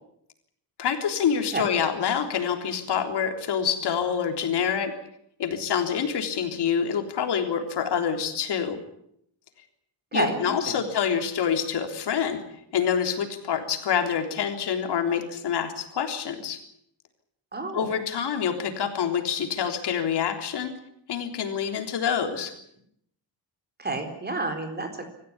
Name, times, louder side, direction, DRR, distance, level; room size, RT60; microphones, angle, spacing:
voice 1, 0.8-4.9 5.4-8.8 10.1-12.4 12.7-16.6 17.7-20.7 21.1-22.6, left 7 dB, 75° left, 5 dB, 3.7 m, -26 dB
voice 2, 10.1-10.8 17.5-17.9 23.8-25.1, right 2 dB, 25° right, 6 dB, 4.2 m, -30 dB
26.5 x 15.0 x 9.8 m, 0.73 s
wide cardioid pair, 155°, 41 cm